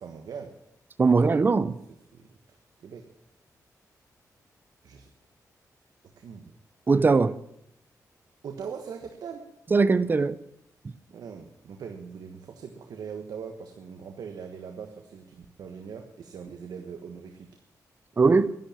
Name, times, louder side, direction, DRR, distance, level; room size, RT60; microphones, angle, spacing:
voice 1, 0.0-0.5 1.1-1.2 2.1-2.3 2.8-3.0 4.8-5.1 6.2-6.5 8.4-9.4 11.1-17.5, right 6 dB, 80° right, 1.4 m, -41 dB
voice 2, 1.0-1.7 6.9-7.4 9.7-10.4 18.2-18.5, right 4 dB, 30° right, 0.7 m, -20 dB
12.0 x 11.0 x 8.7 m
wide cardioid pair, 125°, 6 cm